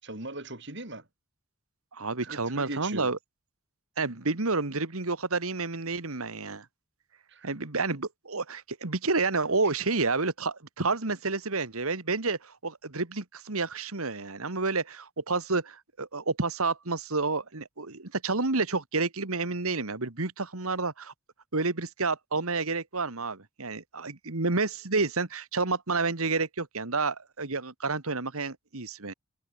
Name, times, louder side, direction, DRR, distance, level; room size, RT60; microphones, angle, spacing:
voice 1, 0.0-1.0 2.2-3.1 7.3-7.5, right 2 dB, 50° right, 4.7 m, -39 dB
voice 2, 1.9-3.2 4.0-6.6 7.4-21.1 21.5-29.1, right 3 dB, 75° right, 1.9 m, -30 dB
head